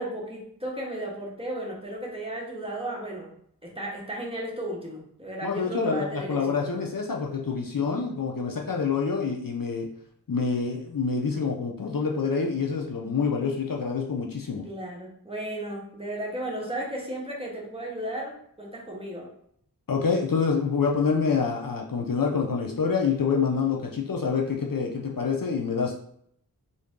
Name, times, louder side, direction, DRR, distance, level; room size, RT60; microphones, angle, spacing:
voice 1, 0.0-3.3 3.6-6.7 14.6-19.3, right 1 dB, 15° right, -3 dB, 1.1 m, -34 dB
voice 2, 5.4-9.9 10.3-14.7 19.9-26.0, left 5 dB, 55° left, 1 dB, 0.6 m, -27 dB
3.7 x 2.7 x 3.6 m, 0.69 s
wide cardioid pair, 60°, 40 cm